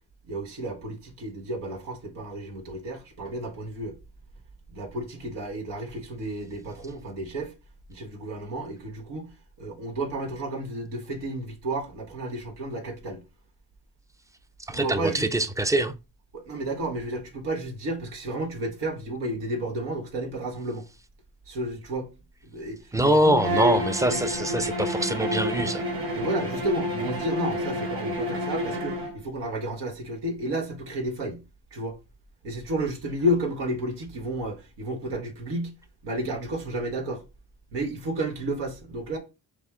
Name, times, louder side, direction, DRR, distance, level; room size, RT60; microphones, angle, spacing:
voice 1, 0.3-4.0 4.7-7.5 7.9-9.3 9.6-13.2 14.7-15.3 16.3-20.8 21.5-22.1 22.5-23.4 24.1-24.2 26.1-31.4 31.7-31.9 32.4-35.7 36.0-37.2 37.7-39.2, right 1 dB, 90° right, 1.3 m, -31 dB
voice 2, 14.7-15.9 22.9-25.8, right 1 dB, 10° right, 0.4 m, -24 dB
Bowed string instrument, 23.4-29.2, equal, 60° right, 2.2 m, -29 dB
6.0 x 2.1 x 3.6 m
cardioid pair, 70°, 40 cm